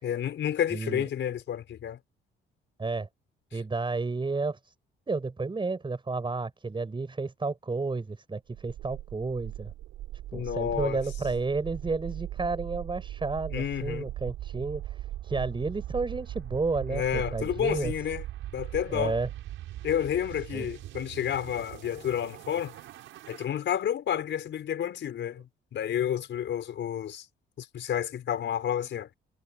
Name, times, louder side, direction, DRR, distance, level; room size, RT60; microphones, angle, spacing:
voice 1, 0.0-2.0 3.5-3.6 10.3-11.0 13.5-14.1 16.9-18.2 18.5-19.2 19.8-22.7 23.3-27.2 27.6-29.1, left 9 dB, 70° left, 5.0 m, -30 dB
voice 2, 0.7-1.1 2.8-3.1 3.5-4.7 5.1-9.7 10.3-17.9 18.9-19.3 20.5-20.7, right 3 dB, 25° right, 5.4 m, -31 dB
sound 1, 8.5-23.4, right 14 dB, 90° right, 6.7 m, -40 dB
cardioid pair, 90°, 20 cm